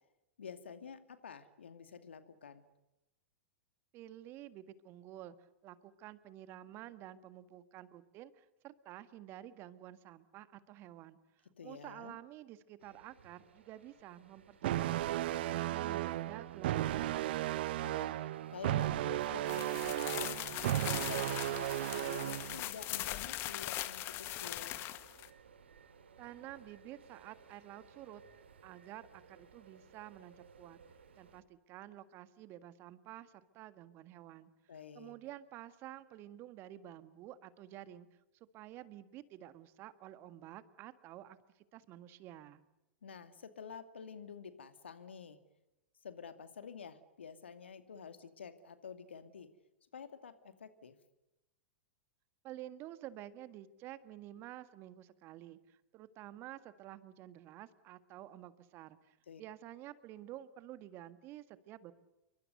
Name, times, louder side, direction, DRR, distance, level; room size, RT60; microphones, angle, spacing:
voice 1, 0.4-2.7 11.6-12.2 17.8-18.2 18.5-20.4 21.0-24.8 34.7-35.1 43.0-45.4 46.0-49.5 49.9-50.9 59.3-59.4, left 6 dB, 75° left, 10 dB, 2.3 m, -49 dB
voice 2, 3.9-17.5 26.2-28.2 28.6-30.8 31.2-34.5 34.9-38.1 38.5-42.6 52.4-61.9, right 13 dB, 40° right, 13 dB, 1.7 m, -51 dB
sound 1, 12.8-31.4, right 6 dB, 75° right, 2.5 m, -59 dB
sound 2, 14.6-22.6, right 14 dB, 60° right, 1.0 m, -35 dB
sound 3, 19.4-25.3, left 15 dB, 40° left, 1.7 m, -41 dB
28.5 x 24.0 x 6.8 m, 0.97 s
figure-of-eight pair, 95°, 6 cm